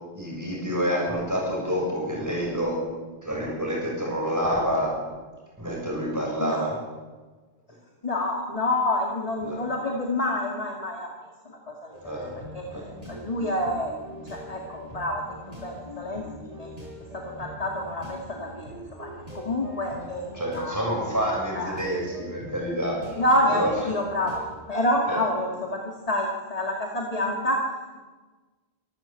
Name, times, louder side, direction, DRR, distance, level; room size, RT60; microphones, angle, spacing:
voice 1, 0.2-2.8 3.2-4.9 5.6-6.8 9.4-9.6 12.0-12.3 12.7-12.9 20.3-23.2 23.5-23.7 25.1-25.2, equal, 15° right, -3 dB, 7.1 m, -28 dB
voice 2, 8.0-11.1 11.7-12.1 12.5-12.6 13.1-13.9 14.3-15.2 15.6-16.7 17.4-19.1 19.3-20.8 21.5-21.8 23.2-24.4 24.7-25.8 26.1-27.6, left 1 dB, 35° left, 0 dB, 2.3 m, -27 dB
sound 1, 11.9-24.5, left 1 dB, 35° right, 8.2 m, -42 dB
25.5 x 13.5 x 8.3 m, 1.3 s
omnidirectional pair, 1.1 m